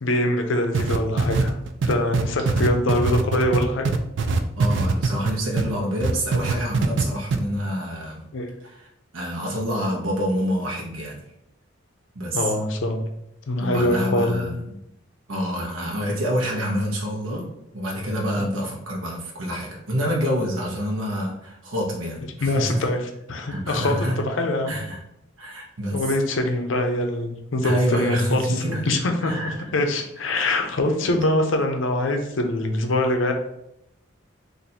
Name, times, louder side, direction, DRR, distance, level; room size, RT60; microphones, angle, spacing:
voice 1, 0.0-1.5 1.9-3.9 8.3-8.5 12.3-13.1 13.5-14.5 18.4-18.5 22.4-23.0 23.3-24.7 25.9-28.4 28.9-33.3, left 1 dB, 70° left, 4 dB, 0.5 m, -23 dB
sound 1, 0.7-5.7 6.0-7.0 7.3-7.4, right 4 dB, 65° right, 0.3 m, -22 dB
voice 2, 4.6-8.3 8.6-8.9 9.1-11.2 12.1-12.5 13.6-14.8 15.3-17.5 17.7-22.8 23.5-24.2 24.7-25.0 25.4-26.0 27.6-28.9 29.2-29.7 31.0-31.2, equal, 85° right, -3 dB, 0.8 m, -27 dB
2.7 x 2.5 x 4.2 m, 0.80 s
head